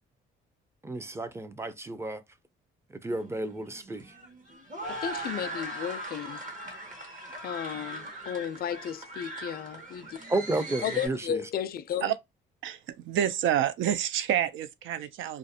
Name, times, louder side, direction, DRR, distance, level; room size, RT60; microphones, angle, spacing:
voice 1, 0.8-2.2 3.0-4.1 10.3-11.4, right 2 dB, 15° right, 0.4 m, -32 dB
sound 1, 3.1-11.1, right 1 dB, 40° right, 1.0 m, -40 dB
voice 2, 4.9-6.4 7.4-10.2 10.8-12.1, left 9 dB, 50° left, 0.4 m, -34 dB
voice 3, 12.6-15.4, right 10 dB, 75° right, 0.4 m, -28 dB
2.4 x 2.1 x 2.7 m
cardioid pair, 90°, 20 cm